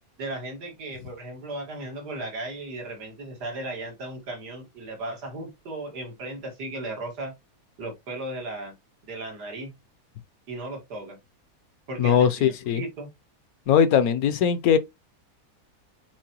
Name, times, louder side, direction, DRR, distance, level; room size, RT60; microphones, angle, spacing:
voice 1, 0.2-7.3 7.8-8.7 9.1-9.7 10.5-11.2 11.9-13.1, right 2 dB, 85° right, 2.5 m, -36 dB
voice 2, 12.0-12.8 13.7-14.8, left 8 dB, 70° left, 1.1 m, -20 dB
7.5 x 4.5 x 2.9 m
omnidirectional pair, 1.7 m